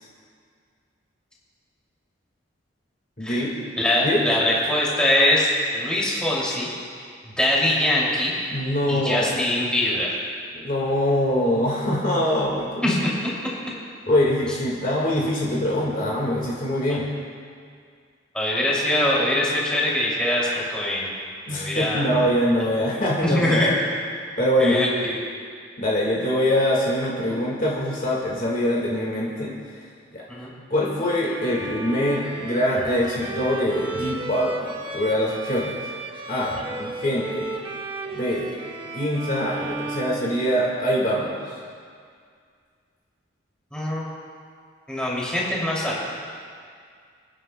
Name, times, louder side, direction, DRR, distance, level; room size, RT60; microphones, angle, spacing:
voice 1, 3.2-3.5 4.0-4.2 8.5-9.3 10.5-13.0 14.1-17.1 21.5-23.8 24.4-24.8 25.8-29.5 30.1-30.2 30.7-35.7 36.3-37.6 38.1-38.5 38.9-41.5, equal, 40° left, -4 dB, 1.7 m, -23 dB
voice 2, 3.8-6.7 7.4-8.3 8.9-10.2 12.8-13.1 18.3-21.1 21.5-22.2 22.9-23.7 24.6-25.3 30.3-30.5 43.7-44.1 44.9-46.0, left 1 dB, 5° left, -6 dB, 2.6 m, -23 dB
Bowed string instrument, 31.2-40.9, right 3 dB, 25° right, 0.8 m, -34 dB
28.5 x 9.9 x 2.2 m, 2.1 s
head